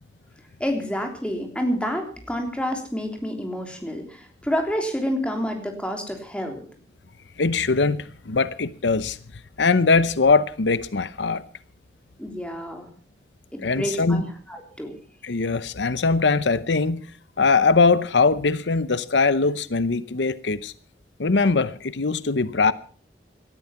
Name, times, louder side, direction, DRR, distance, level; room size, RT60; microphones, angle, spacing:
voice 1, 0.6-6.6 12.2-12.9 13.5-14.9, equal, 5° left, 3.3 m, -28 dB
voice 2, 7.4-9.2 9.6-11.4 13.6-14.2 15.2-17.1 17.4-20.7 21.2-22.7, left 4 dB, 90° left, 0.8 m, -21 dB
18.0 x 13.0 x 5.8 m
head